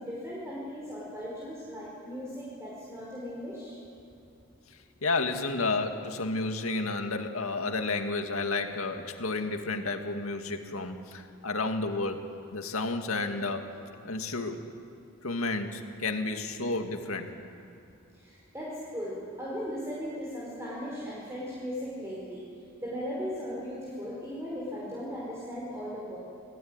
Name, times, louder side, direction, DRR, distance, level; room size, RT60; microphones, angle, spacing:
voice 1, 0.0-3.7 18.1-22.5 22.8-26.2, equal, 15° right, -5 dB, 5.5 m, -37 dB
voice 2, 5.0-12.3 12.5-13.7 14.0-14.6 15.2-17.3, left 3 dB, 85° left, 5 dB, 2.2 m, -31 dB
29.0 x 19.0 x 9.7 m, 2.6 s
head